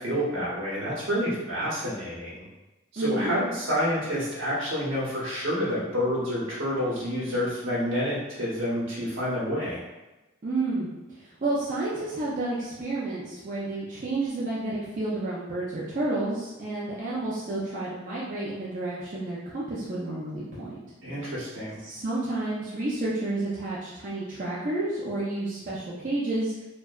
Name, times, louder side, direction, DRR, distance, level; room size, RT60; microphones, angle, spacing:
voice 1, 0.0-2.5 2.9-9.8 21.0-21.8, equal, 75° right, -6 dB, 0.9 m, -28 dB
voice 2, 3.0-3.3 10.4-20.8 21.8-26.5, right 2 dB, 40° right, -8 dB, 0.4 m, -30 dB
2.6 x 2.2 x 2.3 m, 1.1 s
head